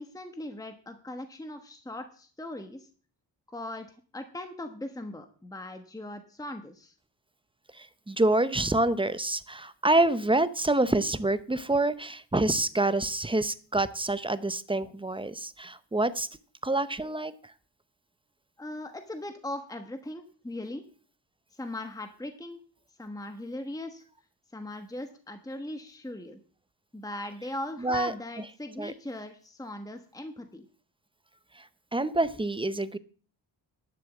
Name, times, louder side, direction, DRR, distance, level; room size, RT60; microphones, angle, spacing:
voice 1, 0.0-2.9 3.5-6.9 18.6-20.8 21.5-22.6 23.0-24.0 24.5-26.4 26.9-30.6, left 1 dB, 10° left, 7 dB, 1.2 m, -39 dB
voice 2, 7.7-16.3 16.6-17.3 27.8-28.1 28.8-28.9 31.6-31.7 31.9-33.0, right 2 dB, 10° right, 14 dB, 0.7 m, -27 dB
11.5 x 6.9 x 7.1 m, 0.41 s
cardioid pair, 95°, 43 cm